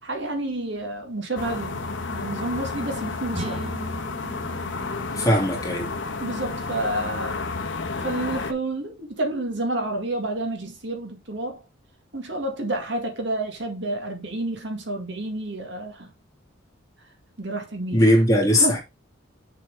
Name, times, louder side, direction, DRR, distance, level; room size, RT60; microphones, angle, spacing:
voice 1, 0.0-3.7 6.2-7.5 8.0-11.6 12.1-16.1 17.4-18.0 18.5-18.8, right 2 dB, 65° right, 1.9 m, -30 dB
sound 1, 1.4-8.5, left 3 dB, 75° left, 1.1 m, -31 dB
sound 2, 3.3-7.1, right 1 dB, 30° right, 1.4 m, -39 dB
voice 2, 5.1-6.0 17.9-18.8, equal, 20° left, 2.6 m, -19 dB
7.0 x 4.4 x 4.9 m
head